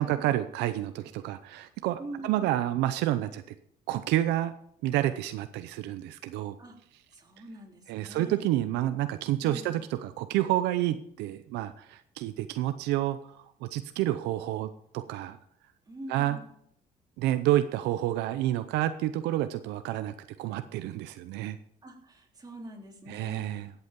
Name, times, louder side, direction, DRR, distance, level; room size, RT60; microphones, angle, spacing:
voice 1, 0.0-3.4 3.9-4.5 4.8-6.6 7.9-13.2 13.6-15.4 16.1-16.4 17.2-20.1 20.4-21.6 23.1-23.7, right 14 dB, 90° right, 11 dB, 0.7 m, -29 dB
voice 2, 2.0-2.5 6.6-6.8 7.1-8.5 9.4-9.8 15.9-16.5 21.8-23.6, right 1 dB, 25° right, -1 dB, 3.5 m, -44 dB
15.5 x 8.3 x 5.2 m, 0.70 s
cardioid pair, 110°, 17 cm